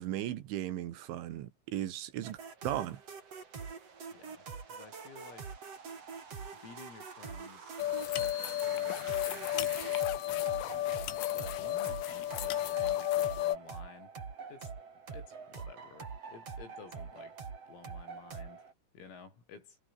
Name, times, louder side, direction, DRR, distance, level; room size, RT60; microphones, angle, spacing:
voice 1, 0.0-2.4 2.6-3.0, right 12 dB, 70° right, 3.9 m, -36 dB
sound 1, 2.2-18.7, right 5 dB, 35° right, 3.9 m, -45 dB
voice 2, 4.1-6.0 6.6-11.0 11.3-14.1 14.5-14.7 15.1-17.4 17.7-19.8, left 5 dB, 90° left, 9.9 m, -54 dB
sound 2, 7.8-13.6, left 14 dB, 75° left, 4.0 m, -32 dB
omnidirectional pair, 5.9 m